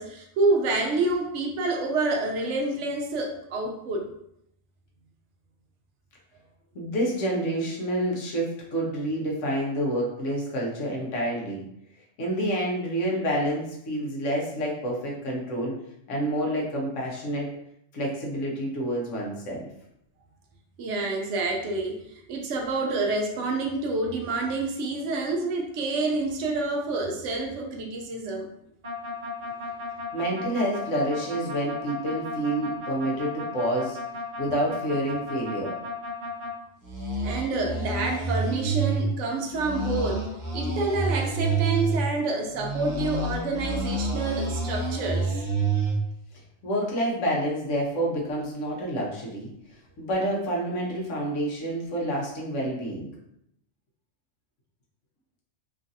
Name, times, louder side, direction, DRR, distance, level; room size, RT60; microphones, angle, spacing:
voice 1, 0.0-4.1 20.8-22.0 22.3-28.5 37.2-40.3 40.5-45.4, right 3 dB, 70° right, 2 dB, 0.9 m, -28 dB
voice 2, 6.7-11.6 12.2-15.7 16.1-17.5 17.9-19.7 30.1-34.0 34.4-35.8 46.6-49.5 50.0-53.1, right 1 dB, 70° left, -2 dB, 1.1 m, -28 dB
sound 1, 28.8-36.5 36.8-39.0 39.5-42.0 42.6-45.9, right 3 dB, 45° right, 0.7 m, -29 dB
3.1 x 2.5 x 2.6 m, 0.77 s
omnidirectional pair, 1.3 m